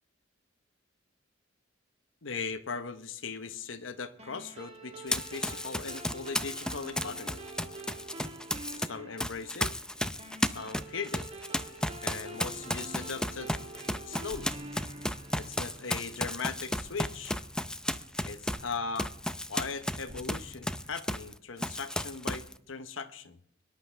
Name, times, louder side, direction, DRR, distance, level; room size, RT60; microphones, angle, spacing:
voice 1, 2.2-7.4 8.7-9.7 10.4-11.3 12.0-13.5 14.0-14.5 15.4-17.4 18.2-19.1 19.5-23.4, left 5 dB, 80° left, 1.0 m, -39 dB
sound 1, 4.2-16.9, right 2 dB, 30° right, 1.6 m, -47 dB
Run, 5.1-8.9 9.2-21.3 21.6-22.5, left 1 dB, 5° left, 0.5 m, -34 dB
sound 2, 12.3-20.9, equal, 55° right, 4.7 m, -52 dB
24.0 x 11.5 x 3.4 m
head